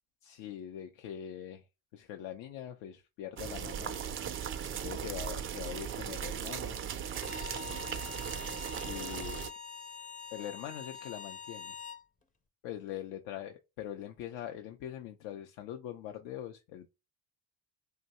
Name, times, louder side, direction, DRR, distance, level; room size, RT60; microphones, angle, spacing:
voice 1, 0.2-1.6 1.9-4.0 4.8-6.8 8.8-9.5 10.3-11.8 12.6-16.9, left 11 dB, 65° left, 0.6 m, -42 dB
sound 1, 3.4-9.5, right 8 dB, 30° right, 0.4 m, -38 dB
Bowed string instrument, 7.1-12.0, left 6 dB, 15° left, 0.6 m, -45 dB
2.7 x 2.2 x 4.1 m
hypercardioid pair, 70°, 48 cm